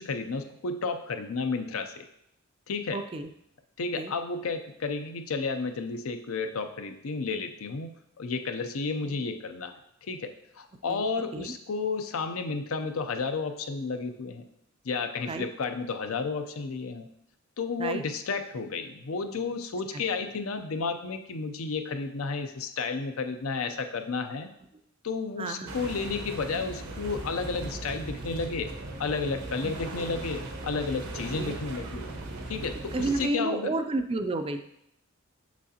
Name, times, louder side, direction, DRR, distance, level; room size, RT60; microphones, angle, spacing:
voice 1, 0.0-2.1 2.7-3.0 3.8-9.8 10.1-14.4 14.8-17.1 17.6-24.5 25.0-28.7 29.0-32.0 32.5-33.7, left 4 dB, 70° left, 7 dB, 0.6 m, -32 dB
voice 2, 2.9-3.3 4.0-4.1 9.0-9.2 10.9-11.0 11.3-11.5 15.3-15.5 17.8-18.0 19.9-20.0 25.4-25.8 29.6-29.7 31.4-31.5 32.9-34.6, right 2 dB, 25° right, 8 dB, 0.3 m, -31 dB
sound 1, 25.7-33.3, right 2 dB, 90° right, 0.9 m, -38 dB
6.3 x 6.1 x 2.8 m, 0.76 s
head